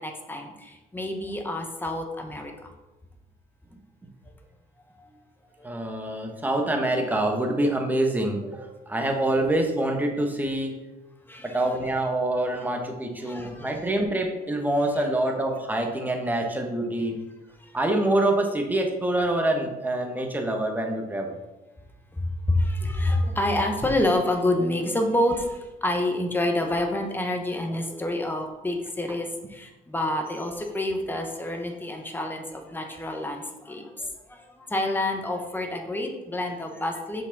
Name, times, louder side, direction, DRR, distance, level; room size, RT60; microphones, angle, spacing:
voice 1, 0.0-2.7 5.0-5.1 11.3-11.6 13.2-13.8 22.2-37.2, left 1 dB, 10° left, 3 dB, 1.1 m, -28 dB
voice 2, 5.6-10.8 11.4-17.2 17.7-21.4, right 1 dB, 10° right, 2 dB, 1.2 m, -26 dB
6.5 x 5.2 x 4.0 m, 1.1 s
cardioid pair, 110°, 17 cm